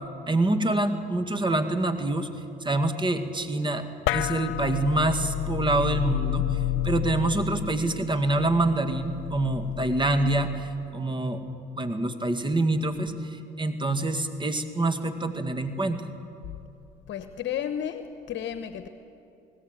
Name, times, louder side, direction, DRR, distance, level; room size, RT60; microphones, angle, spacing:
voice 1, 0.3-2.3 2.6-3.8 4.1-11.4 11.8-13.1 13.6-16.0, right 2 dB, 25° right, 8 dB, 2.1 m, -26 dB
sound 1, 4.1-10.8, left 14 dB, 85° left, 0.5 m, -31 dB
voice 2, 17.1-18.9, left 9 dB, 65° left, 9 dB, 1.1 m, -32 dB
21.5 x 18.0 x 9.2 m, 2.7 s
supercardioid pair, 70°, 20 cm